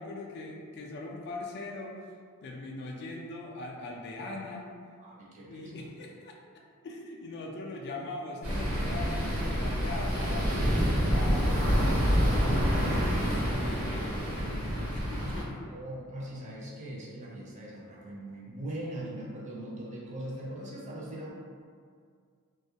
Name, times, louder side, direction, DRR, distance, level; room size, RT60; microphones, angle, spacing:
voice 1, 0.0-2.0 2.4-4.7 5.5-6.4 6.8-15.7, left 2 dB, 50° left, 0 dB, 0.3 m, -41 dB
voice 2, 5.0-5.9 15.7-21.3, right 1 dB, 35° right, -4 dB, 0.4 m, -40 dB
sound 1, 8.4-15.4, equal, 80° right, 0.6 m, -27 dB
2.2 x 2.1 x 2.7 m, 2.1 s
head